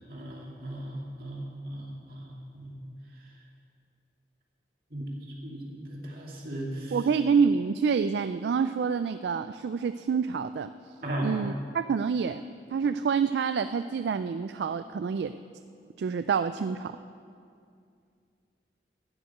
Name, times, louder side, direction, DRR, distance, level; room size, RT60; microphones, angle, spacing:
voice 1, 0.1-2.7 4.9-5.1 5.4-7.0 11.0-11.3, right 1 dB, 50° right, -3 dB, 2.6 m, -37 dB
voice 2, 6.9-10.7 11.2-12.4 12.7-15.3 16.0-17.0, right 6 dB, 70° right, 11 dB, 0.3 m, -27 dB
12.5 x 6.6 x 9.3 m, 2.3 s
head